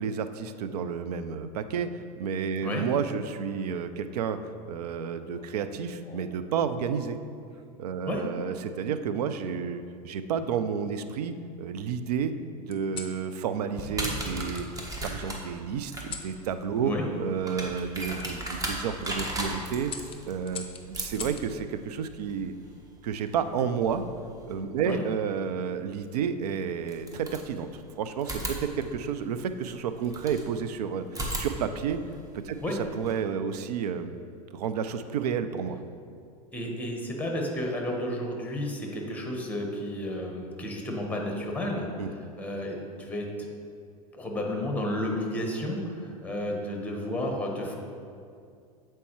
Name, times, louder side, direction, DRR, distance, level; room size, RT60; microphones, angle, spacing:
voice 1, 0.0-1.9 2.2-4.4 4.7-7.2 7.8-12.3 12.7-14.7 15.0-16.9 17.2-19.9 20.3-22.5 23.0-24.0 24.5-27.7 28.0-32.0 32.3-34.1 34.5-35.8 42.0-42.1, right 7 dB, 75° right, 10 dB, 0.4 m, -31 dB
sound 1, 5.3-6.5 7.5-7.9 9.2-9.9 10.6-11.5 12.7-13.2 14.5-14.7 16.0-16.4 18.2-18.3 18.8-19.1 19.9-21.5 23.0-23.4, left 6 dB, 25° left, 0.6 m, -44 dB
sound 2, 13.7-24.5 26.0-26.1 26.8-27.8 28.2-30.5 31.1-33.1, right 1 dB, 15° right, 1.1 m, -37 dB
voice 2, 36.5-43.3 44.1-47.7, left 1 dB, 5° left, 1 dB, 1.2 m, -32 dB
8.2 x 4.4 x 3.1 m, 2.4 s
hypercardioid pair, 90°, 20 cm